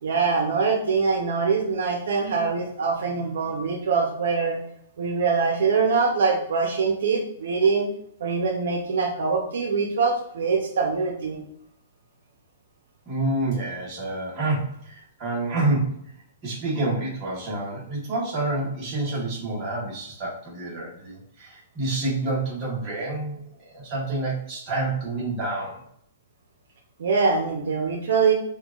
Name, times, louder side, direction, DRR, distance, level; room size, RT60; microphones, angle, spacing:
voice 1, 0.0-4.6 5.0-7.9 8.2-11.4 27.0-28.3, right 5 dB, 65° right, 1 dB, 0.7 m, -23 dB
voice 2, 13.1-16.1 16.4-23.4 23.7-25.8, right 2 dB, 20° right, -5 dB, 1.1 m, -28 dB
5.5 x 2.3 x 2.4 m, 0.68 s
hypercardioid pair, 175°, 0 cm